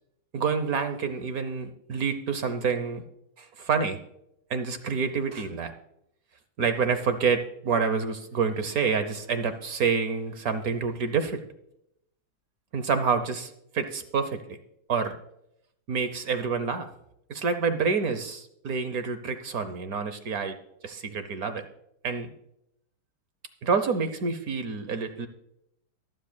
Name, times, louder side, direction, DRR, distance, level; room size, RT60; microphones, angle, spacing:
voice 1, 0.3-3.0 3.4-4.0 4.5-5.7 6.6-11.4 12.7-14.6 14.9-15.1 15.9-16.9 17.3-20.6 20.8-21.6 22.0-22.3 23.6-25.3, right 5 dB, 60° right, 10 dB, 1.0 m, -28 dB
23.5 x 7.8 x 2.3 m, 0.77 s
omnidirectional pair, 2.4 m